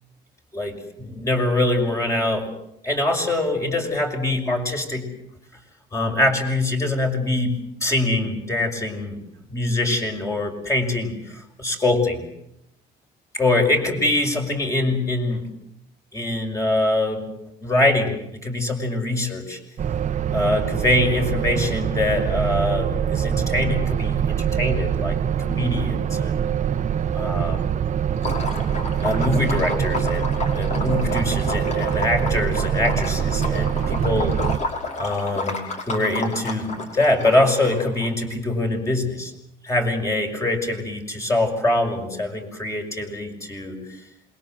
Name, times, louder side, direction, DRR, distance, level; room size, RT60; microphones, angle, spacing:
voice 1, 0.5-2.5 2.8-5.1 5.9-9.2 9.5-12.3 13.3-15.5 16.1-17.2 17.6-19.6 20.3-26.5 27.1-27.7 29.0-34.4 35.0-39.3 39.6-44.0, left 2 dB, 15° left, 2 dB, 5.9 m, -24 dB
sound 1, 19.8-34.6, right 8 dB, 45° right, 1.3 m, -24 dB
Liquid, 28.2-38.1, left 2 dB, 45° left, 5.8 m, -31 dB
27.5 x 22.0 x 7.6 m, 0.79 s
cardioid pair, 110°, 17 cm